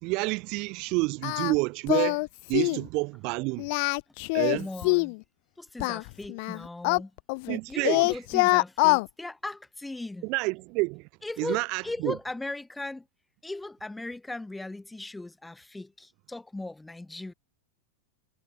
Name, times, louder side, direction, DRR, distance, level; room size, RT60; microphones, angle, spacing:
voice 1, 0.0-2.2 2.5-3.7 4.3-4.7 7.5-8.1 10.2-11.1 11.4-12.2, right 27 dB, 35° right, 3.2 m, -29 dB
Singing, 1.2-1.6 1.9-2.3 2.5-2.8 3.6-5.2 5.8-7.6 7.8-9.1, left 31 dB, 45° left, 0.4 m, -24 dB
voice 2, 4.5-5.2 5.6-7.1 7.7-10.3 11.2-13.1 13.4-17.3, left 2 dB, 5° left, 3.4 m, -38 dB
supercardioid pair, 170°, 0 cm